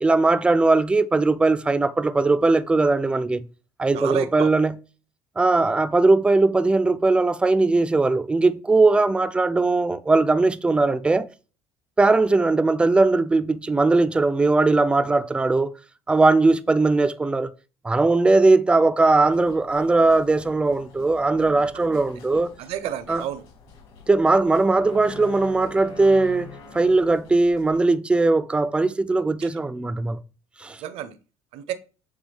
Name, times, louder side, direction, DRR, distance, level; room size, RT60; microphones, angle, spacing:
voice 1, 0.0-3.5 3.8-4.7 5.4-11.3 12.0-15.7 16.1-17.5 17.8-22.5 23.1-23.2 24.1-30.2 30.6-30.8, right 3 dB, 10° right, 0.4 m, -19 dB
voice 2, 3.9-4.5 22.6-23.4 29.4-29.5 30.8-31.1 31.5-31.7, right 11 dB, 65° right, 0.7 m, -30 dB
sound 1, 19.2-27.8, left 4 dB, 65° left, 2.6 m, -45 dB
7.9 x 3.5 x 3.4 m
cardioid pair, 150°, 11 cm